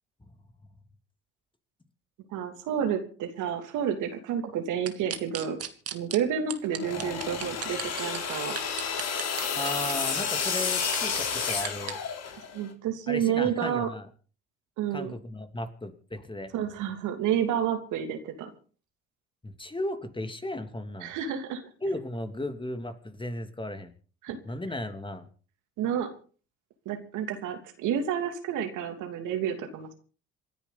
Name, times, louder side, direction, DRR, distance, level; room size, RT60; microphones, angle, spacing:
voice 1, 2.3-5.6 5.9-8.6 12.5-13.9 14.8-15.1 16.5-18.5 21.0-21.6 24.2-24.4 25.8-26.1 26.8-29.9, right 8 dB, 70° right, 6 dB, 3.0 m, -30 dB
sound 1, 4.9-6.2 6.5-8.2 8.6-11.9, right 9 dB, 50° right, 2.2 m, -36 dB
sound 2, 6.7-12.6, left 6 dB, 50° left, 4.2 m, -31 dB
voice 2, 9.5-12.0 13.1-14.1 14.9-16.5 19.4-21.1 21.8-23.9 24.4-25.3, left 1 dB, 15° left, 7 dB, 2.9 m, -35 dB
27.5 x 10.5 x 4.2 m, 0.41 s
hypercardioid pair, 55°, 32 cm